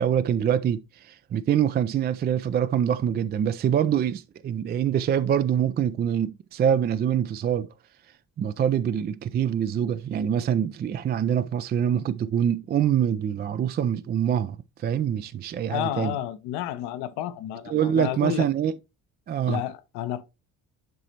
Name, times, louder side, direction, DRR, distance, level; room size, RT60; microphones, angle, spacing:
voice 1, 0.0-7.7 8.4-16.1 17.7-18.7 19.3-19.6, right 9 dB, 25° right, 0.4 m, -25 dB
voice 2, 15.7-18.5 19.5-20.2, left 12 dB, 60° left, 0.8 m, -31 dB
10.5 x 4.9 x 2.9 m
figure-of-eight pair, 45°, 45 cm